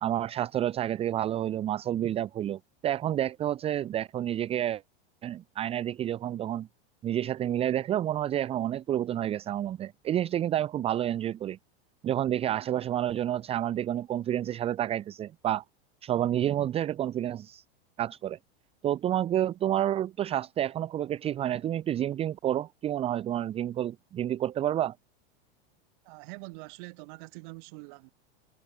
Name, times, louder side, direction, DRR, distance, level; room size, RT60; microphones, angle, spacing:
voice 1, 0.0-4.8 5.2-6.7 7.0-11.6 12.0-15.6 16.0-17.6 18.0-18.4 18.8-24.9, right 11 dB, 20° right, 0.7 m, -29 dB
voice 2, 26.0-28.1, right 31 dB, 50° right, 3.4 m, -44 dB
supercardioid pair, 145°, 31 cm